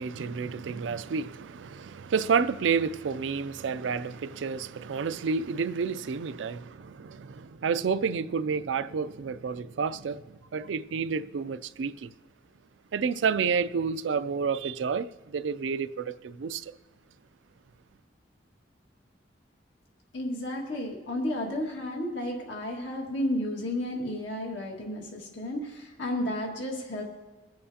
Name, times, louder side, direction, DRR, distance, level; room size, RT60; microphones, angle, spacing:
voice 1, 0.0-12.1 12.9-16.7, right 5 dB, 85° right, 0.4 m, -30 dB
voice 2, 20.1-27.0, left 1 dB, 80° left, 1.9 m, -32 dB
23.0 x 7.7 x 2.8 m
head